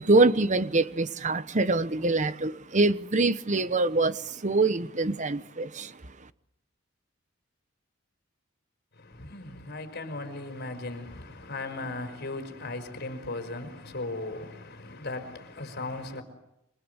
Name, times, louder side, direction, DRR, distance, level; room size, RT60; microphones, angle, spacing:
voice 1, 0.0-5.9, right 3 dB, 35° right, 1.1 m, -24 dB
voice 2, 8.9-16.2, left 2 dB, 55° left, 5.3 m, -37 dB
28.0 x 25.5 x 8.2 m
head